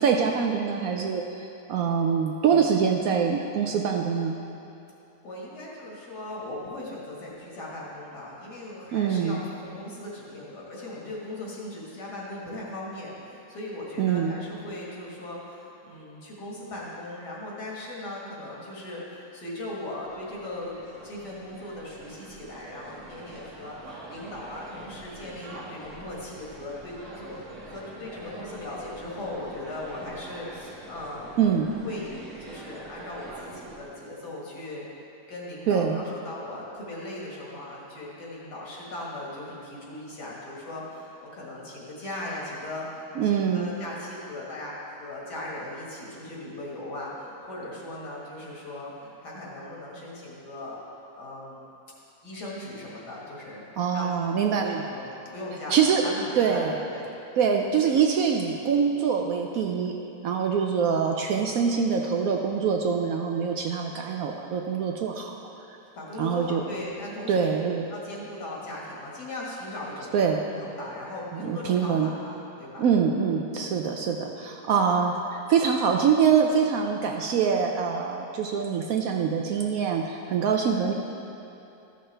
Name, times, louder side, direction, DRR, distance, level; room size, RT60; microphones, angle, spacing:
voice 1, 0.0-4.4 8.9-9.4 14.0-14.4 31.4-31.7 35.7-36.0 43.2-43.7 53.8-54.9 55.7-56.0 56.4-56.8 57.4-60.0 60.2-65.5 66.2-66.6 67.3-67.9 70.1-70.4 71.3-72.1 72.8-80.9, right 6 dB, 70° right, 2 dB, 0.9 m, -24 dB
voice 2, 5.2-20.8 21.0-31.4 31.8-51.7 52.2-53.7 53.9-57.1 66.0-70.1 70.4-72.9 73.5-73.8, left 1 dB, 70° left, -5 dB, 2.3 m, -38 dB
sound 1, 19.9-33.9, right 2 dB, 50° right, 1.5 m, -45 dB
13.5 x 6.5 x 3.3 m, 2.7 s
omnidirectional pair, 1.8 m